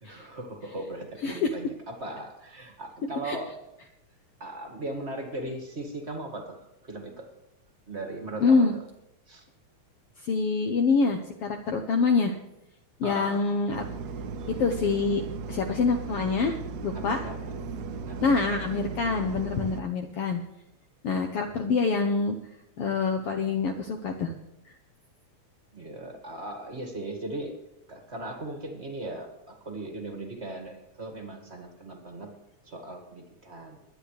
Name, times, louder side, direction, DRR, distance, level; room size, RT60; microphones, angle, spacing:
voice 1, 0.0-3.5 4.4-7.3 7.9-8.7 9.3-9.4 13.0-13.4 14.4-14.5 16.9-17.4 18.1-18.3 25.7-27.5 27.9-32.3 32.6-33.8, right 2 dB, 25° right, 3 dB, 1.6 m, -38 dB
voice 2, 8.4-8.7 10.2-12.4 13.0-13.9 14.5-15.2 15.5-16.6 16.8-17.2 18.2-20.4 21.0-22.3 22.8-24.3 24.6-24.7, left 4 dB, 65° left, 4 dB, 1.6 m, -25 dB
sound 1, 13.7-19.8, right 4 dB, 75° right, 2.1 m, -36 dB
23.0 x 9.8 x 3.3 m, 0.90 s
omnidirectional pair, 3.4 m